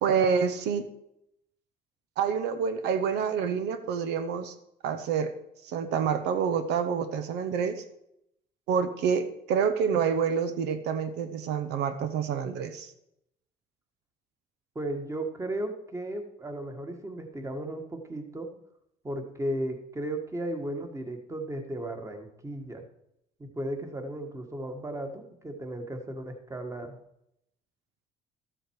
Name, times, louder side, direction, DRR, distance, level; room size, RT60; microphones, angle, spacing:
voice 1, 0.0-0.9 2.2-4.5 4.8-5.3 5.6-7.8 8.7-12.9, right 6 dB, 85° right, 9 dB, 1.0 m, -27 dB
voice 2, 14.7-18.5 19.0-22.8 23.4-27.0, right 1 dB, 15° right, 5 dB, 1.7 m, -35 dB
13.0 x 7.9 x 4.8 m, 0.80 s
cardioid pair, 110°, 17 cm